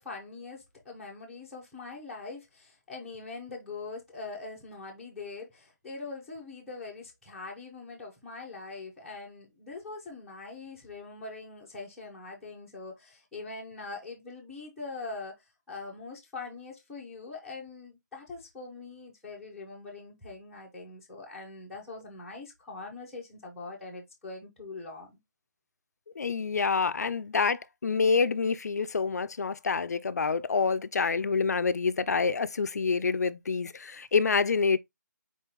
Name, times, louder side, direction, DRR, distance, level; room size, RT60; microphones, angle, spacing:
voice 1, 0.0-15.3 15.7-25.2, left 3 dB, ahead, 0.6 m, -42 dB
voice 2, 26.2-34.8, left 5 dB, 60° left, 0.4 m, -27 dB
4.2 x 3.6 x 2.9 m
figure-of-eight pair, 170°, 10 cm